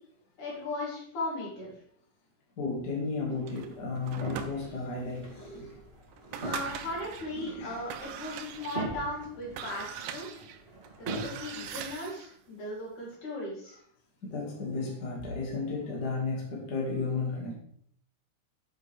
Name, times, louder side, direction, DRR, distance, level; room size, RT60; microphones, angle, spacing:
voice 1, 0.4-1.7 6.4-10.3 11.0-13.8, left 1 dB, 65° left, -5 dB, 4.7 m, -37 dB
voice 2, 2.6-5.8 6.2-6.6 7.3-7.8 14.2-17.5, left 3 dB, 35° left, -3 dB, 2.2 m, -34 dB
sound 1, 3.3-11.9, right 2 dB, 35° right, 1.0 m, -42 dB
sound 2, 3.5-5.0 5.6-5.7 6.1-7.3 7.8-12.4, right 8 dB, 80° right, 2.1 m, -41 dB
8.9 x 7.5 x 3.4 m, 0.66 s
omnidirectional pair, 3.7 m